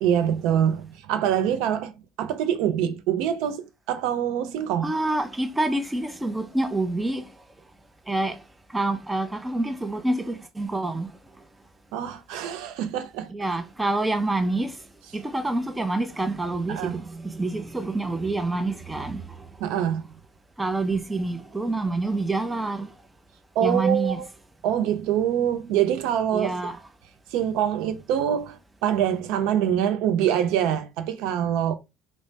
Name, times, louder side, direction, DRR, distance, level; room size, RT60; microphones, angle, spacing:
voice 1, 0.0-4.9 11.9-13.3 16.7-17.0 19.6-20.0 23.6-24.3 24.6-26.6 27.3-31.7, right 9 dB, 75° right, 0.4 m, -25 dB
voice 2, 4.8-7.3 8.1-8.4 8.7-11.1 13.3-14.8 15.1-19.3 20.6-22.9 23.6-24.2 26.3-26.7, right 2 dB, 10° right, 0.4 m, -27 dB
2.6 x 2.0 x 3.2 m
cardioid pair, 120°, 0 cm